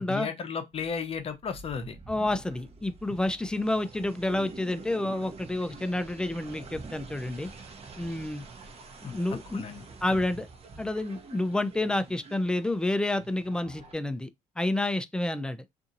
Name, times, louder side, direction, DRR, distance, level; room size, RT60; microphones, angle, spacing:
voice 1, 0.0-2.0 9.0-9.1 9.5-9.8 10.1-10.2, left 6 dB, 40° left, 0.7 m, -34 dB
sound 1, 0.7-13.9, right 4 dB, 45° right, 0.8 m, -47 dB
voice 2, 2.1-7.5 8.0-8.4 9.0-9.6 10.0-10.5 10.8-14.3 14.6-15.6, left 1 dB, 5° left, 0.4 m, -29 dB
2.7 x 2.6 x 2.5 m
supercardioid pair, 75°, 15 cm